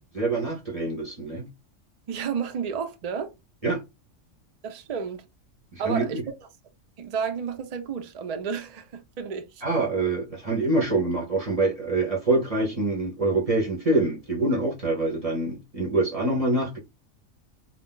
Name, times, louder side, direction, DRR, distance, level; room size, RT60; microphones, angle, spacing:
voice 1, 0.1-1.5 3.6-3.8 5.7-6.2 9.6-16.8, right 2 dB, 35° right, 0.6 m, -25 dB
voice 2, 2.1-3.3 4.6-5.2 5.8-6.3 7.0-9.6, right 6 dB, 85° right, 0.3 m, -31 dB
2.4 x 2.2 x 3.7 m
omnidirectional pair, 1.4 m